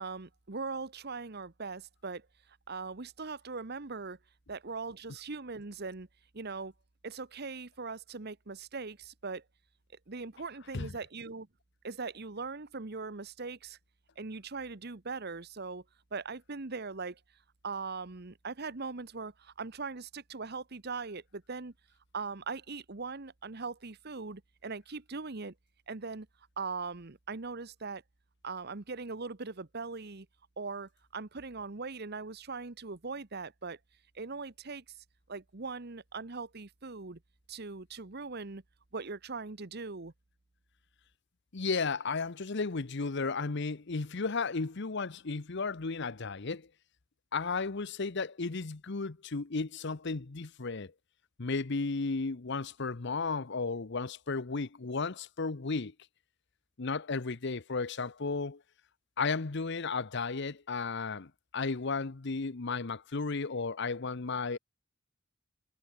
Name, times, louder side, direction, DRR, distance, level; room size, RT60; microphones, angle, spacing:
voice 1, 0.0-2.3 2.7-4.2 4.5-6.1 6.3-6.7 7.0-9.4 10.1-11.5 11.8-13.8 14.2-15.8 16.1-17.2 17.6-21.7 22.1-25.5 25.9-26.3 26.6-28.0 28.4-30.3 30.6-33.8 34.1-34.8 35.3-37.2 37.5-38.6 38.9-40.1, right 4 dB, 50° right, 1.2 m, -40 dB
voice 2, 41.5-46.7 47.3-50.9 51.4-55.9 56.8-58.6 59.2-64.6, left 4 dB, 60° left, 0.9 m, -34 dB
head